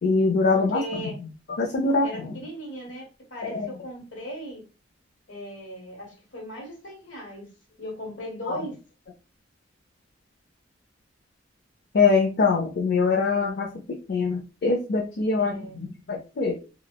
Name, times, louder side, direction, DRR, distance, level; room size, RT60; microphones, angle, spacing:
voice 1, 0.0-1.1 1.6-2.3 3.4-3.7 8.5-8.6 11.9-16.6, left 4 dB, 60° left, 0.4 m, -24 dB
voice 2, 0.5-1.1 2.0-4.6 5.3-7.5 7.8-8.8 15.4-15.8, equal, 75° left, 1.2 m, -37 dB
3.1 x 2.0 x 2.2 m
head